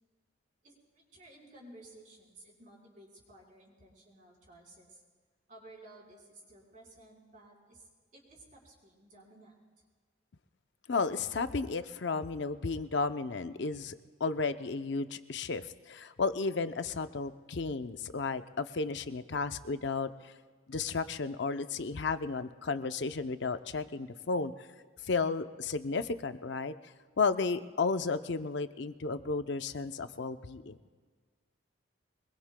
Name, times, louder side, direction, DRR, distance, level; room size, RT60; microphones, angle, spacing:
voice 1, 0.6-5.0 5.5-9.6, right 2 dB, 40° right, -3 dB, 4.2 m, -55 dB
voice 2, 10.9-20.3 20.7-24.5 25.0-26.7 27.2-30.8, left 4 dB, 60° left, 10 dB, 0.6 m, -33 dB
25.0 x 21.5 x 2.2 m, 1.5 s
head